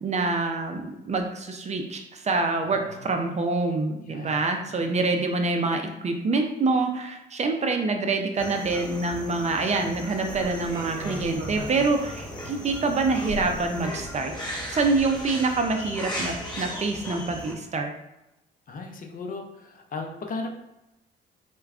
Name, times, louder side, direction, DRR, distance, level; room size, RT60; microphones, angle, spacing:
voice 1, 0.0-14.3 14.7-17.9, right 3 dB, 35° right, 4 dB, 0.4 m, -26 dB
voice 2, 2.6-3.2 4.0-5.0 12.4-12.5 18.7-20.6, left 3 dB, 45° left, 3 dB, 0.6 m, -37 dB
sound 1, 8.4-17.5, equal, 20° left, 1.0 m, -37 dB
sound 2, 10.3-11.9 12.3-12.4 13.3-13.7 14.0-14.1 14.6-15.1 15.6-15.7, right 2 dB, 85° right, 0.6 m, -36 dB
4.6 x 2.2 x 2.4 m, 0.92 s
cardioid pair, 90°, 20 cm